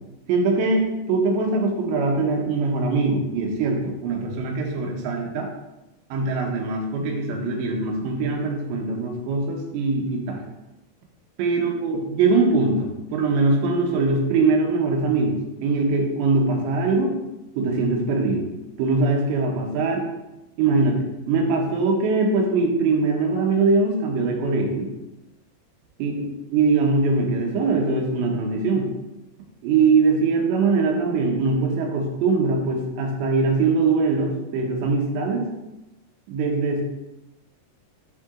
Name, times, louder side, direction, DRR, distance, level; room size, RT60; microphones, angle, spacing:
voice 1, 0.3-5.5 6.1-10.5 11.4-15.4 15.6-17.1 17.6-18.5 18.8-20.0 20.6-24.9 26.0-26.3 26.5-28.9 29.6-35.5 36.3-36.8, right 3 dB, 80° right, 1 dB, 3.3 m, -22 dB
10.5 x 3.7 x 3.7 m, 0.99 s
omnidirectional pair, 5.1 m